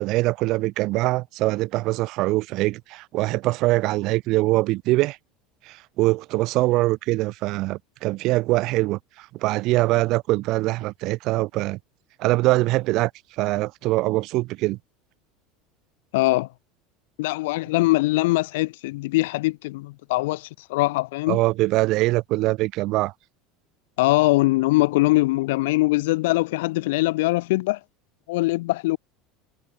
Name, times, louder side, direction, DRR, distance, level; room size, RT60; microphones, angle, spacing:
voice 1, 0.0-5.2 5.7-9.0 9.4-11.8 12.2-13.1 13.4-14.8 21.3-23.1, right 19 dB, 40° right, 1.1 m, -23 dB
voice 2, 16.1-16.5 17.2-21.4 24.0-27.8 28.3-29.0, left 20 dB, 75° left, 3.7 m, -22 dB
cardioid pair, 180°, 0 cm